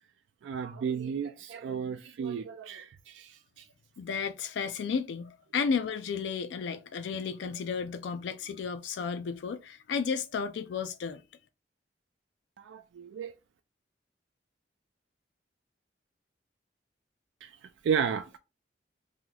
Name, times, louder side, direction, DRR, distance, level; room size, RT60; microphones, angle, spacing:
voice 1, 0.4-3.7 12.6-13.3 17.4-17.5 17.8-18.4, right 7 dB, 85° right, 0.3 m, -33 dB
voice 2, 4.0-11.2, left 6 dB, 75° left, 0.3 m, -33 dB
3.0 x 2.3 x 3.8 m
head